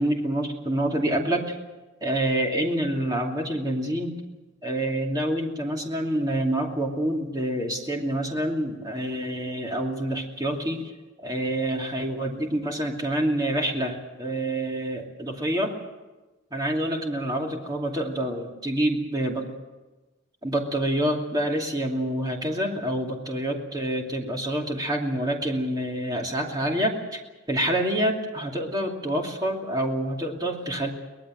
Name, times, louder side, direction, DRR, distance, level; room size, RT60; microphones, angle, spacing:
voice 1, 0.0-1.5 2.0-4.2 4.6-10.9 11.2-15.8 16.5-19.5 20.4-27.2 27.5-30.9, right 1 dB, 20° right, 1 dB, 2.7 m, -27 dB
23.5 x 19.0 x 7.7 m, 1.2 s
head